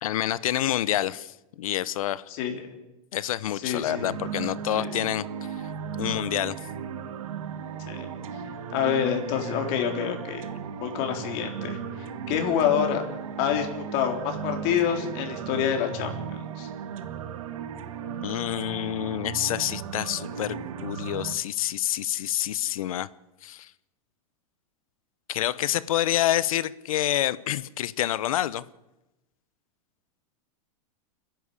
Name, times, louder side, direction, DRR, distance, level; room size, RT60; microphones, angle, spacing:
voice 1, 0.0-2.2 3.1-5.2 5.9-6.6 18.2-20.6 20.8-23.1 23.4-23.7 25.3-28.6, left 13 dB, 85° left, 18 dB, 0.9 m, -27 dB
voice 2, 3.5-4.1 4.8-4.9 7.9-8.1 8.7-10.4 10.8-11.8 12.3-13.0 13.4-16.7, left 9 dB, 45° left, 3 dB, 3.9 m, -27 dB
sound 1, 3.9-21.3, right 7 dB, 75° right, 2.0 m, -36 dB
29.5 x 11.0 x 8.3 m, 0.99 s
supercardioid pair, 160°, 17 cm